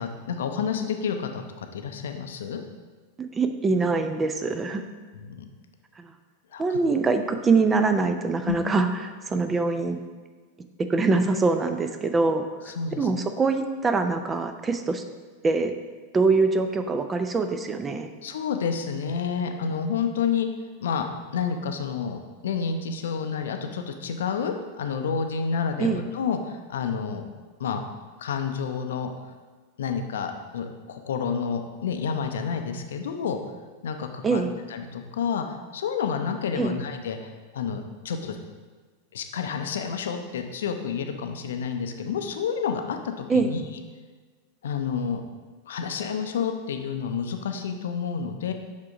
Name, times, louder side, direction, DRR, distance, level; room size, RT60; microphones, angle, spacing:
voice 1, 0.0-2.6 5.1-5.5 6.5-6.8 8.4-8.6 12.7-13.1 18.2-20.5 20.8-21.1 21.3-27.3 27.6-27.8 28.2-29.1 29.8-33.4 33.8-34.4 34.7-35.4 35.7-38.4 39.1-43.6 44.6-45.2 45.7-48.5, left 6 dB, 60° left, 6 dB, 0.6 m, -29 dB
voice 2, 3.3-4.8 6.0-6.1 6.6-10.0 10.9-15.0 15.4-15.7 16.1-18.1 25.8-26.0 34.2-34.5 36.6-36.7 43.3-43.5, right 4 dB, 20° right, 7 dB, 0.5 m, -24 dB
7.3 x 3.7 x 4.9 m, 1.4 s
figure-of-eight pair, 90°, 0 cm